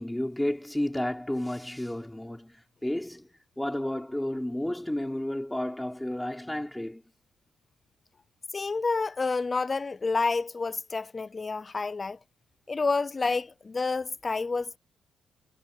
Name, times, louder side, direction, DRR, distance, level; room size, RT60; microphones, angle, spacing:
voice 1, 0.0-3.3 3.6-7.0, left 1 dB, 5° left, 4.9 m, -32 dB
voice 2, 8.5-12.2 12.7-14.8, left 4 dB, 30° left, 0.7 m, -29 dB
cardioid pair, 90°, 0 cm